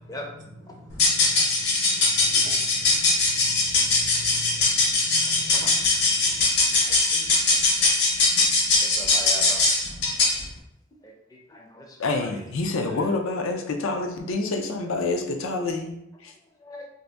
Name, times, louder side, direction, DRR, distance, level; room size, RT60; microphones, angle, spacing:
sound 1, 0.9-10.4, left 3 dB, 55° left, 0.7 m, -21 dB
voice 1, 1.3-3.2 3.6-5.5 6.1-6.4, equal, 65° right, 2 dB, 0.6 m, -44 dB
voice 2, 2.9-3.2 5.3-6.3 6.8-7.3 8.8-9.6 11.0-12.4 12.9-13.1 14.3-14.6 16.6-16.9, left 1 dB, 20° left, 1 dB, 0.4 m, -41 dB
voice 3, 12.0-16.3, left 3 dB, 85° left, 4 dB, 0.5 m, -27 dB
2.7 x 2.5 x 3.4 m, 0.82 s
head